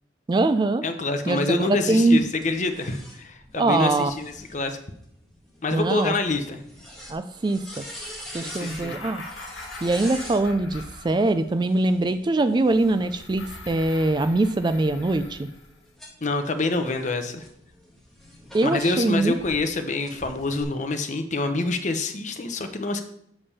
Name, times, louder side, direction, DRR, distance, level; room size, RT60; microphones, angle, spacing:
voice 1, 0.3-0.8 1.3-2.2 3.6-4.1 5.7-6.1 7.1-7.8 8.3-9.2 9.8-15.5 18.5-19.3, right 2 dB, 25° right, 11 dB, 0.3 m, -22 dB
voice 2, 0.8-4.8 5.6-6.6 8.4-9.0 16.2-17.4 18.6-23.0, left 2 dB, 40° left, 7 dB, 0.8 m, -26 dB
sound 1, 2.4-10.4 11.6-13.9 14.5-19.6 20.0-20.6, equal, ahead, 1.6 m, -44 dB
sound 2, 8.3-11.6 12.7-15.8, left 2 dB, 75° left, 1.6 m, -42 dB
7.1 x 5.2 x 5.5 m, 0.74 s
head